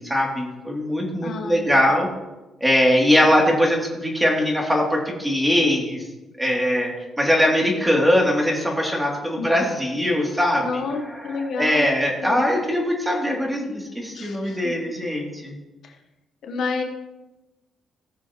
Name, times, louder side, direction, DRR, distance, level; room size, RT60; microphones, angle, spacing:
voice 1, 0.0-2.1 2.6-6.0 6.4-6.9 7.2-10.7 11.6-15.5, equal, 5° right, -1 dB, 2.9 m, -21 dB
voice 2, 1.2-2.1 9.4-9.5 10.6-11.9 12.2-12.6 14.1-14.9 15.8-16.0 16.4-16.8, left 4 dB, 65° left, 3 dB, 1.2 m, -30 dB
17.5 x 6.9 x 3.1 m, 1.0 s
cardioid pair, 90°, 0 cm